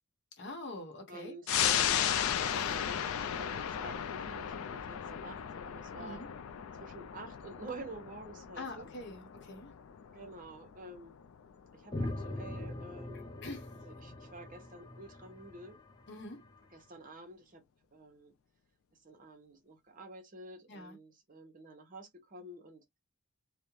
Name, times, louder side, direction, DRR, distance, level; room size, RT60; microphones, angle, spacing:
voice 1, 0.4-2.7 6.0-6.3 8.6-9.7 13.4-13.7 16.1-16.5 20.7-21.0, left 2 dB, 55° left, 0.9 m, -45 dB
voice 2, 1.1-2.0 2.5-6.2 6.8-8.9 10.1-11.2 11.7-13.3 13.8-15.8 16.7-17.6 17.9-18.3 19.0-22.8, right 2 dB, 40° right, 0.8 m, -49 dB
sound 1, 1.5-12.4 12.8-12.9, left 9 dB, 80° left, 0.3 m, -35 dB
sound 2, 11.9-16.6, left 1 dB, 20° left, 0.5 m, -42 dB
2.4 x 2.1 x 2.9 m
head